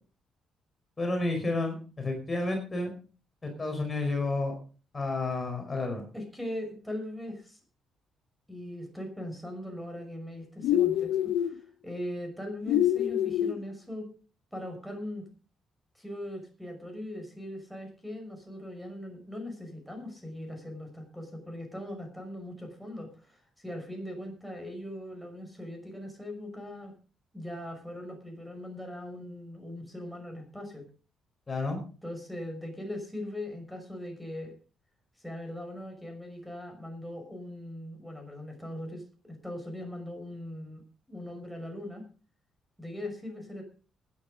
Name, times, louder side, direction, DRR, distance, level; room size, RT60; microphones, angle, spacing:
voice 1, 1.0-2.9 3.4-4.5 4.9-6.0 31.5-31.8, left 2 dB, 25° left, 3 dB, 4.9 m, -30 dB
voice 2, 6.1-7.6 8.5-14.1 14.5-15.2 15.9-26.9 27.3-30.8 32.0-34.6 35.2-40.8 41.1-42.0 42.8-43.6, left 1 dB, ahead, 4 dB, 5.9 m, -40 dB
sound 1, 10.6-11.5 12.7-13.6, left 11 dB, 85° left, 0.6 m, -25 dB
15.5 x 9.9 x 5.1 m, 0.37 s
cardioid pair, 90°, 0 cm